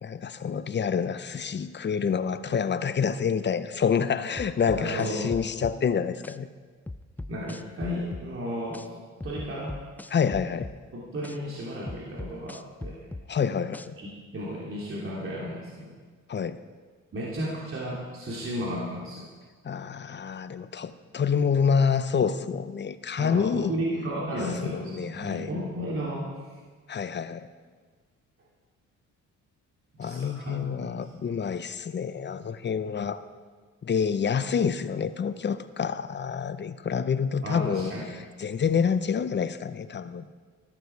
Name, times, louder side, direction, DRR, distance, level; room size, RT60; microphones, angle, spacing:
voice 1, 0.0-6.5 10.1-10.7 13.3-13.9 16.3-16.6 19.6-23.7 24.6-25.5 26.9-27.5 30.0-33.2 33.8-37.9 38.4-40.2, left 6 dB, 35° left, 13 dB, 0.8 m, -27 dB
sound 1, 4.4-5.8 6.2-6.4 6.9-8.3 8.7-8.9 9.2-10.8 11.2-11.4 11.9-13.3 13.7-13.9, left 2 dB, 5° left, 0.4 m, -38 dB
voice 2, 4.7-5.3 7.3-8.8 9.2-9.8 10.9-13.1 14.0-15.9 17.1-19.3 23.2-26.3 30.0-31.3 37.4-38.1, equal, 45° right, -5 dB, 3.0 m, -34 dB
14.0 x 13.5 x 4.7 m, 1.5 s
cardioid pair, 90°, 30 cm